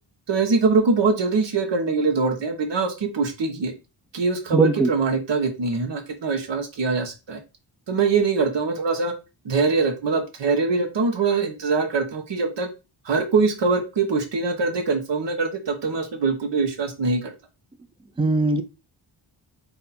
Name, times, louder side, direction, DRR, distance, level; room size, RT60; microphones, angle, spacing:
voice 1, 0.3-3.7 4.1-7.4 7.9-9.1 9.4-12.7 13.0-17.3, right 4 dB, 65° right, 1.2 m, -23 dB
voice 2, 4.5-4.9 18.2-18.6, right 3 dB, 10° right, 0.4 m, -19 dB
4.0 x 2.8 x 4.2 m
wide cardioid pair, 95°, 46 cm